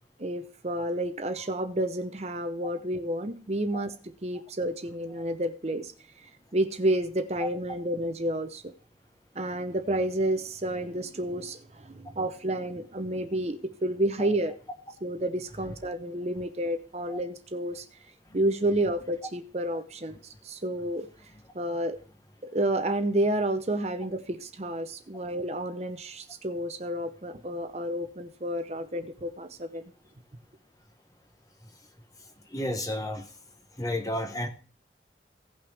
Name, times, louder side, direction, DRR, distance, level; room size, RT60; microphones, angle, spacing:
voice 1, 0.2-5.9 6.2-8.7 9.3-14.5 15.0-17.8 18.3-20.2 20.4-21.1 21.5-22.0 22.4-29.8, right 1 dB, 35° right, 8 dB, 0.7 m, -30 dB
voice 2, 32.5-33.3 33.8-34.5, left 1 dB, 20° left, 6 dB, 1.1 m, -32 dB
16.5 x 5.9 x 3.4 m, 0.39 s
head